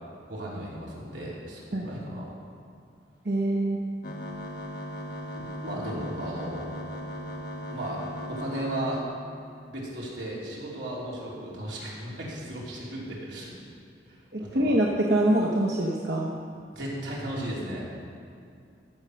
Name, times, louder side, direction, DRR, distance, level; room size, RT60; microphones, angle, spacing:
voice 1, 0.3-2.3 5.4-6.7 7.7-9.0 9.7-13.5 14.1-14.8 16.7-17.9, right 1 dB, 85° right, -5 dB, 3.1 m, -35 dB
voice 2, 3.2-3.8 14.3-16.3, right 1 dB, 60° right, -2 dB, 1.0 m, -24 dB
sound 1, 4.0-9.0, equal, 60° left, 1.3 m, -37 dB
14.5 x 6.7 x 6.3 m, 2.5 s
head